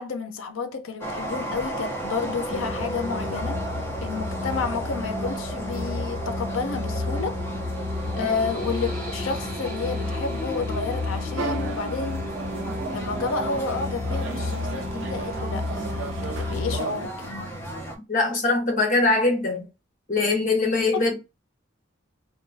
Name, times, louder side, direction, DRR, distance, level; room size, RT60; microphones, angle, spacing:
voice 1, 0.0-3.6 4.0-7.4 8.2-12.2 12.9-17.5 20.9-21.0, left 4 dB, 85° left, 0.5 m, -30 dB
sound 1, 1.0-18.0, equal, 10° left, 0.5 m, -35 dB
sound 2, 2.5-16.8, left 2 dB, 40° right, 1.1 m, -32 dB
sound 3, 11.4-17.1, right 4 dB, 70° right, 0.5 m, -36 dB
voice 2, 18.1-19.7 20.1-21.2, left 3 dB, 40° left, 1.0 m, -22 dB
2.9 x 2.2 x 2.5 m
head